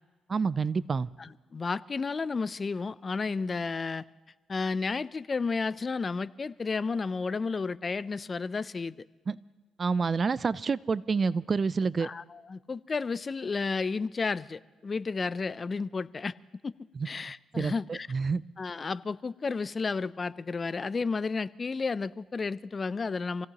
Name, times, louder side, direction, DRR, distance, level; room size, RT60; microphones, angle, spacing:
voice 1, 0.3-1.1 9.3-9.4 9.8-12.1 16.9-17.1 17.5-18.4, right 5 dB, 40° right, 0.4 m, -28 dB
voice 2, 1.2-4.0 4.5-9.0 12.0-16.3 16.6-16.7 17.1-18.1 18.6-23.5, left 4 dB, 35° left, 0.4 m, -32 dB
27.0 x 16.5 x 3.0 m
cardioid pair, 90°, 0 cm